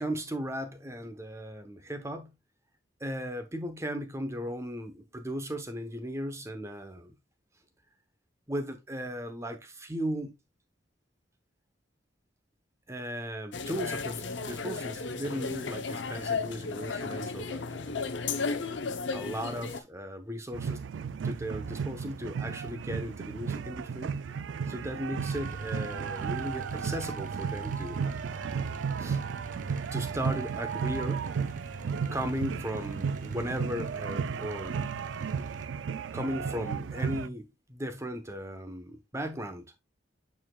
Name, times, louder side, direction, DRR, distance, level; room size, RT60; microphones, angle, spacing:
voice 1, 0.0-2.3 3.0-7.1 8.5-10.3 12.9-18.1 19.1-20.9 21.2-24.2 24.7-28.5 29.0-29.2 29.9-31.2 32.1-34.8 36.1-39.7, equal, 15° right, 0.9 m, -36 dB
sound 1, 13.5-19.8, left 4 dB, 80° left, 0.7 m, -34 dB
sound 2, 20.5-37.3, right 6 dB, 85° right, 0.4 m, -34 dB
sound 3, 25.2-35.7, right 2 dB, 45° right, 0.7 m, -44 dB
8.5 x 4.9 x 2.3 m
head